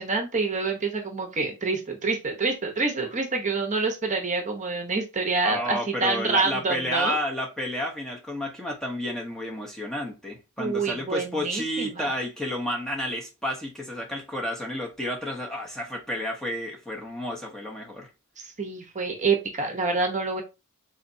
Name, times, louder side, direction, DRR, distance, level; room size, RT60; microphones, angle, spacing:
voice 1, 0.0-7.2 10.6-12.1 18.4-20.4, right 4 dB, 35° right, 0.8 m, -27 dB
voice 2, 5.4-18.1, left 1 dB, ahead, 0.8 m, -31 dB
3.9 x 3.2 x 2.6 m
head